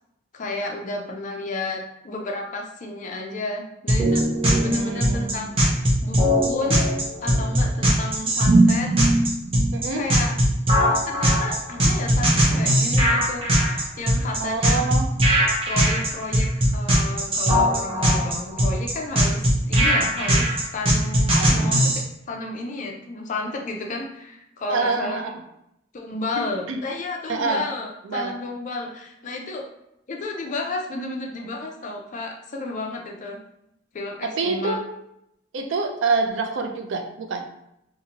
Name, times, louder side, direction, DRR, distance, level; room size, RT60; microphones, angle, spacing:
voice 1, 0.3-4.3 4.6-5.5 6.0-6.8 7.2-8.9 9.9-10.4 10.8-14.9 15.7-21.8 22.3-25.2 25.9-29.7 30.1-33.4 33.9-34.8, left 2 dB, 35° left, 1 dB, 0.4 m, -32 dB
sound 1, 3.9-22.0, equal, 25° right, 0.6 m, -19 dB
voice 2, 4.6-5.5 9.7-10.1 14.4-15.1 21.3-21.6 24.7-25.4 26.7-26.8 27.3-27.7 28.0-28.4 34.2-35.0 35.5-37.5, right 4 dB, 65° right, 4 dB, 0.4 m, -26 dB
2.7 x 2.5 x 2.8 m, 0.81 s
head